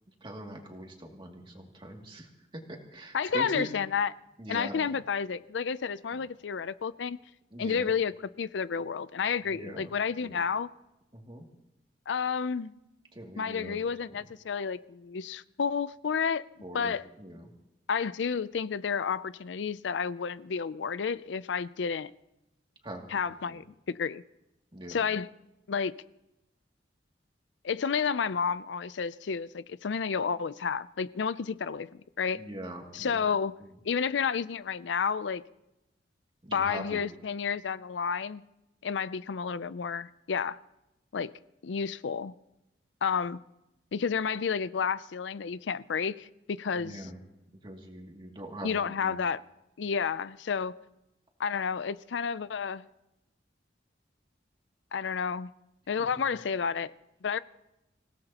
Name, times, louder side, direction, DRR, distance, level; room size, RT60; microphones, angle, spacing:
voice 1, 0.1-3.7 4.4-4.9 6.1-6.3 7.5-7.9 9.4-9.9 10.2-10.5 11.1-11.4 13.1-14.3 16.6-17.5 22.8-23.6 24.7-25.0 32.3-33.3 33.6-33.7 36.4-37.0 46.7-47.2 47.6-49.2 56.0-56.1, right 1 dB, 30° right, 2.5 m, -42 dB
voice 2, 3.1-4.1 4.5-7.2 7.6-10.7 12.1-12.7 13.4-16.4 16.7-17.0 17.9-22.1 23.1-24.2 24.9-25.3 25.7-25.9 27.6-31.9 32.2-32.4 32.9-33.5 33.8-35.4 36.5-38.4 38.8-40.6 41.1-41.3 41.6-42.3 43.0-43.4 43.9-46.9 48.6-49.4 49.8-50.7 51.4-52.9 54.9-55.5 55.9-56.9 57.2-57.4, left 6 dB, 80° left, 0.5 m, -31 dB
27.0 x 17.0 x 2.9 m
head